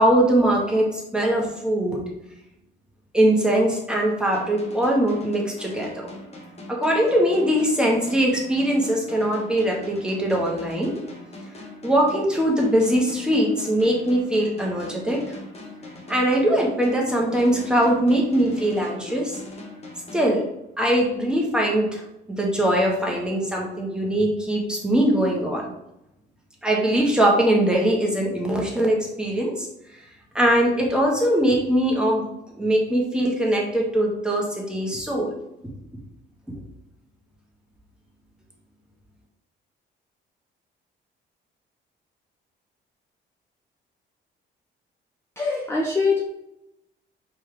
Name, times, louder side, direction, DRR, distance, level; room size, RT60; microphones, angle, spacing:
voice 1, 0.0-2.0 3.1-6.1 6.7-10.9 11.8-15.4 16.1-19.4 20.1-20.4 20.8-22.0 22.4-25.7 26.6-29.7 30.3-32.2 32.6-35.3, right 1 dB, 5° right, -2 dB, 1.4 m, -21 dB
sound 1, 4.3-20.9, left 2 dB, 30° left, 1.1 m, -41 dB
voice 2, 45.4-46.2, left 4 dB, 10° left, -3 dB, 0.8 m, -23 dB
4.4 x 3.5 x 3.3 m, 0.86 s
cardioid pair, 90°, 20 cm